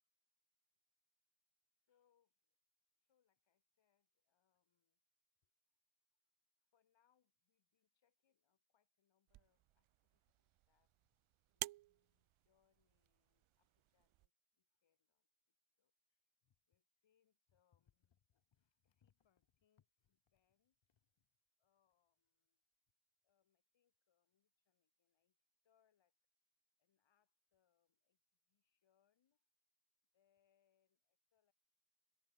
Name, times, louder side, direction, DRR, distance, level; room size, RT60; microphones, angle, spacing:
voice 1, 1.9-2.6 3.0-5.0 5.4-5.5 6.2-6.3 6.6-10.9 11.5-22.6 23.2-25.4 25.6-26.1 26.8-28.2 28.5-29.5 30.1-31.5, left 9 dB, 65° left, 3.5 m, -84 dB
sound 1, 9.3-14.3, right 17 dB, 75° right, 0.7 m, -53 dB
supercardioid pair, 55°, 49 cm